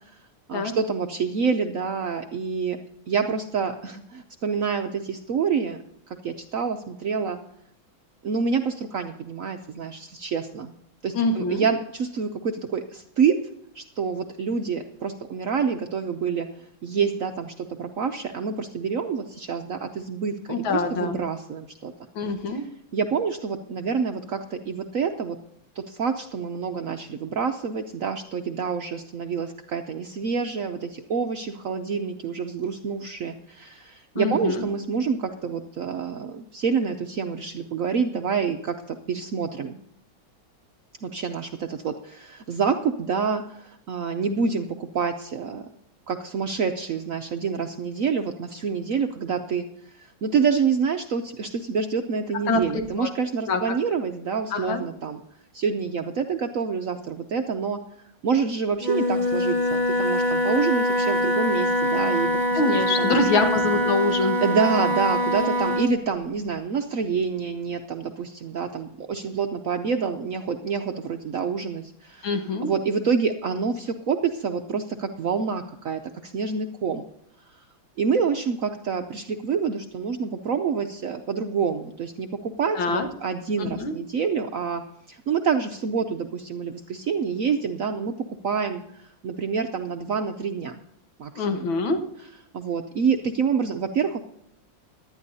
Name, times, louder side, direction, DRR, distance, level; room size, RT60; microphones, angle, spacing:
voice 1, 0.5-2.8 3.1-5.8 6.1-7.4 8.2-10.7 11.0-13.4 13.7-16.5 16.8-21.9 22.5-25.4 25.8-39.8 41.0-45.6 46.1-55.2 55.5-57.8 58.2-62.6 63.0-63.3 64.4-72.3 72.6-77.1 77.6-77.7 78.0-88.1 88.4-90.8 91.2-91.7 92.5-94.2, right 6 dB, 65° right, 6 dB, 0.8 m, -27 dB
voice 2, 11.1-11.6 20.5-21.2 22.2-22.7 34.2-34.7 52.5-53.1 53.5-53.6 54.5-54.8 62.5-64.4 72.2-72.7 82.8-83.1 83.6-84.0 91.4-92.0, left 3 dB, 85° left, 6 dB, 2.1 m, -25 dB
Wind instrument woodwind instrument, 58.8-66.0, equal, 25° right, 1.1 m, -23 dB
18.0 x 12.0 x 2.7 m, 0.75 s
omnidirectional pair, 2.1 m